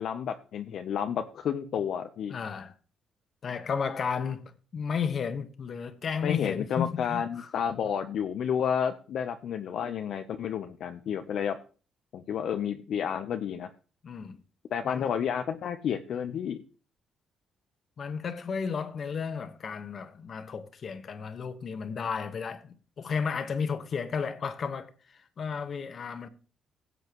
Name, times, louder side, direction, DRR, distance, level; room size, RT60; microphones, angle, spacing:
voice 1, 0.0-2.4 6.2-11.6 12.1-13.7 14.7-16.6, left 8 dB, 70° left, 0.8 m, -31 dB
voice 2, 2.3-2.7 3.4-4.4 4.7-7.5 14.0-14.4 14.8-15.1 18.0-26.3, left 6 dB, 50° left, 1.4 m, -33 dB
16.5 x 7.9 x 3.1 m
cardioid pair, 90°, 0 cm